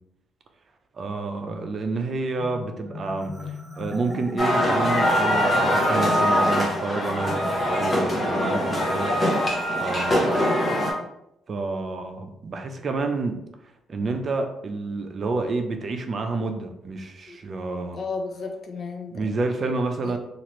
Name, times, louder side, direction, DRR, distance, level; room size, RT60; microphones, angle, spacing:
voice 1, 1.0-9.1 9.8-10.5 11.5-13.4 13.9-18.0 19.1-20.2, right 3 dB, 45° right, 5 dB, 0.5 m, -29 dB
Marimba xylophone, 2.3-5.7, left 3 dB, 20° right, 1.2 m, -39 dB
sound 1, 4.4-10.9, equal, 30° left, 0.9 m, -22 dB
voice 2, 10.2-10.7 17.3-17.4 17.9-19.2 20.0-20.2, left 4 dB, 55° left, 4 dB, 0.5 m, -33 dB
2.9 x 2.4 x 3.0 m, 0.82 s
cardioid pair, 90°, 0 cm